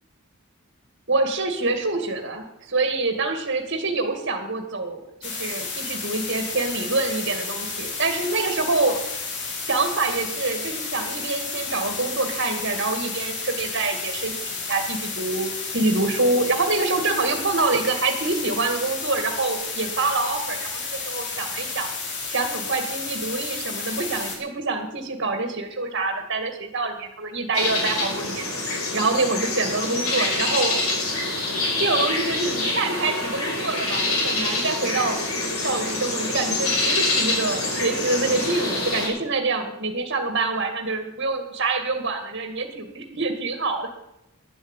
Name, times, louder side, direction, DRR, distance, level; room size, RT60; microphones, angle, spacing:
voice 1, 1.1-9.0 9.7-21.9 22.3-28.5 28.9-30.8 31.8-35.2 35.6-43.9, right 3 dB, 50° right, 6 dB, 2.1 m, -26 dB
sound 1, 5.2-24.4, left 4 dB, 50° left, 3.2 m, -32 dB
sound 2, 27.5-39.1, left 2 dB, 75° left, 5.0 m, -26 dB
11.5 x 7.8 x 8.9 m, 0.85 s
head